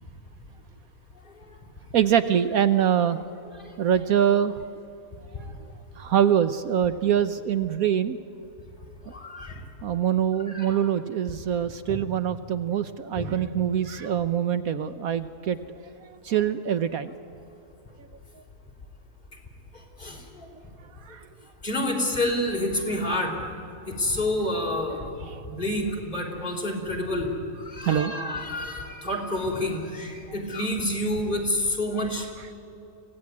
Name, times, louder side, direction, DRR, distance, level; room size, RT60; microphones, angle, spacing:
voice 1, 1.9-3.2 3.8-4.7 5.4-5.5 6.0-8.2 9.1-9.2 9.8-15.6 16.0-17.1 18.3-18.4 21.0-21.3 25.2-25.4 27.9-28.1 31.9-32.5, right 9 dB, 70° right, 11 dB, 1.1 m, -24 dB
voice 2, 9.1-9.6 10.5-10.8 11.9-12.0 13.1-13.3 20.0-20.5 21.6-23.4 23.9-25.0 25.4-27.3 27.5-32.3, left 1 dB, 30° left, 0 dB, 3.8 m, -28 dB
25.5 x 17.0 x 9.6 m, 2.9 s
omnidirectional pair, 1.7 m